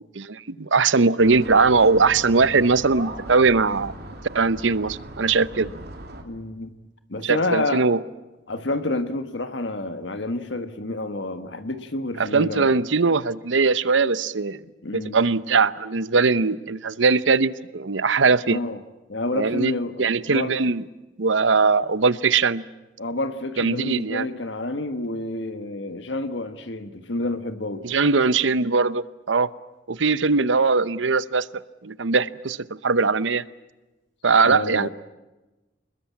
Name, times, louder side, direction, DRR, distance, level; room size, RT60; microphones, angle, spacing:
voice 1, 0.1-3.9 4.3-5.7 7.2-8.0 12.2-14.6 14.9-18.6 19.3-20.8 21.2-22.6 23.6-24.3 27.8-29.5 29.9-31.5 31.8-33.4 34.2-34.9, right 4 dB, 85° right, 17 dB, 0.8 m, -20 dB
sound 1, 1.2-6.2, right 1 dB, 60° right, 2.9 m, -38 dB
voice 2, 6.2-6.7 7.1-7.9 8.5-12.7 14.8-15.2 18.4-18.8 19.1-20.6 23.0-27.8 34.4-34.9, left 2 dB, 70° left, 9 dB, 1.7 m, -29 dB
28.0 x 21.0 x 8.6 m, 1.1 s
head